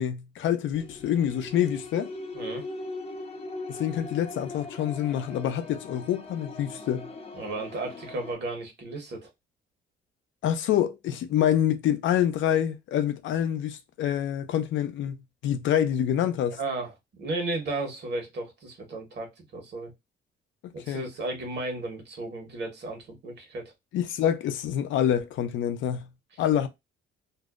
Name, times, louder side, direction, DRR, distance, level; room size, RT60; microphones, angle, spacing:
voice 1, 0.0-2.1 3.7-7.1 10.4-15.2 15.4-16.6 20.6-21.0 23.9-26.1 26.4-26.7, left 10 dB, 75° left, 0.5 m, -26 dB
sound 1, 0.7-8.3, left 2 dB, 30° left, 0.5 m, -40 dB
voice 2, 2.3-2.7 7.4-9.3 16.6-19.9 20.7-23.7, right 2 dB, 60° right, 1.2 m, -34 dB
2.6 x 2.0 x 2.4 m
cardioid pair, 90°, 20 cm